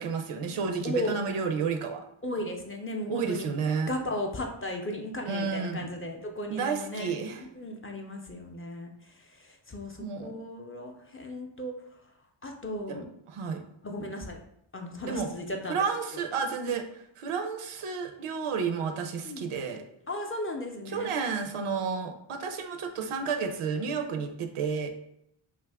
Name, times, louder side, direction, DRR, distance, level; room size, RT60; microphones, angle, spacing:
voice 1, 0.0-2.0 3.1-3.9 5.3-5.9 6.5-7.4 10.0-10.3 12.9-13.6 15.1-15.3 15.7-16.8 17.2-19.8 20.9-24.9, right 5 dB, 90° right, 5 dB, 0.6 m, -31 dB
voice 2, 0.8-1.2 2.2-3.5 3.9-7.1 7.5-12.1 12.4-13.1 13.8-14.4 14.7-15.8 16.7-16.8 19.2-19.4 20.1-21.1, left 1 dB, 25° left, 2 dB, 0.5 m, -36 dB
2.7 x 2.4 x 3.4 m, 0.76 s
cardioid pair, 55°, 49 cm